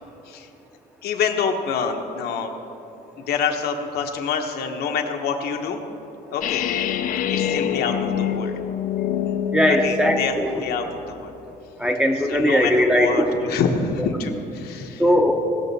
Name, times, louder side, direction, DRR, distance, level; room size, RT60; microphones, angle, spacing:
voice 1, 1.0-2.5 3.2-5.8 6.3-6.6 7.3-8.6 9.7-11.3 12.3-15.0, left 6 dB, 70° left, 4 dB, 1.0 m, -26 dB
sound 1, 6.4-10.4, left 9 dB, 55° left, 0.5 m, -25 dB
voice 2, 9.5-10.6 11.8-13.3 15.0-15.3, equal, 5° right, 3 dB, 0.7 m, -19 dB
18.0 x 6.8 x 4.1 m, 3.0 s
cardioid pair, 165°, 17 cm